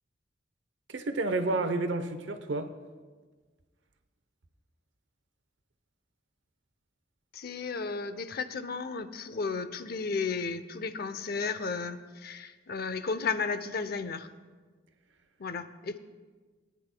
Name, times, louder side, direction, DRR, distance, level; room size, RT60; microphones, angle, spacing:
voice 1, 0.9-2.7, right 2 dB, 80° right, 8 dB, 0.8 m, -30 dB
voice 2, 7.3-14.3 15.4-16.0, left 4 dB, 55° left, 11 dB, 0.7 m, -34 dB
22.0 x 9.8 x 2.2 m, 1.4 s
head